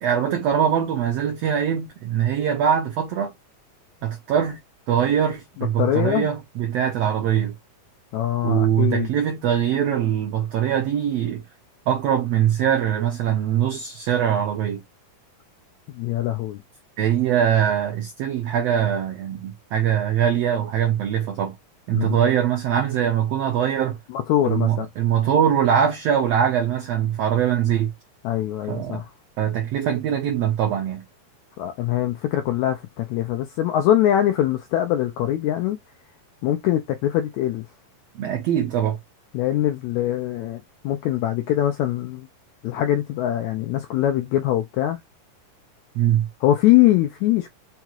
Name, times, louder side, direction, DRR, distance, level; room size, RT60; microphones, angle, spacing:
voice 1, 0.0-3.3 4.0-4.6 4.9-7.5 8.4-11.4 11.9-14.8 17.0-21.6 21.9-24.0 24.4-27.9 28.7-29.0 29.4-31.0 38.1-39.0 45.9-46.3, right 9 dB, 80° right, 1.5 m, -22 dB
voice 2, 5.8-6.3 8.1-9.1 15.9-16.6 21.9-22.1 24.1-24.9 28.2-29.0 31.6-35.8 36.4-37.6 39.3-42.3 42.6-45.0 46.4-47.5, left 13 dB, 85° left, 1.6 m, -22 dB
5.6 x 2.4 x 2.9 m
omnidirectional pair, 3.9 m